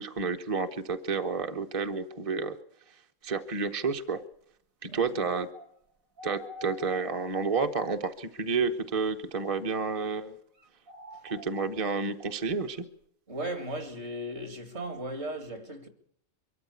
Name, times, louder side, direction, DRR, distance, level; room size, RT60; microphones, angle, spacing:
voice 1, 0.0-2.6 2.9-4.2 4.8-5.5 6.2-10.4 11.2-12.8, right 4 dB, 30° right, 0.9 m, -30 dB
sound 1, 5.5-5.8 6.2-7.5 8.0-8.1 8.8-9.4 10.6-11.9 12.7-12.8, left 2 dB, 75° right, 2.1 m, -47 dB
voice 2, 13.3-15.9, right 1 dB, 50° right, 2.6 m, -36 dB
23.5 x 13.5 x 8.3 m
omnidirectional pair, 1.4 m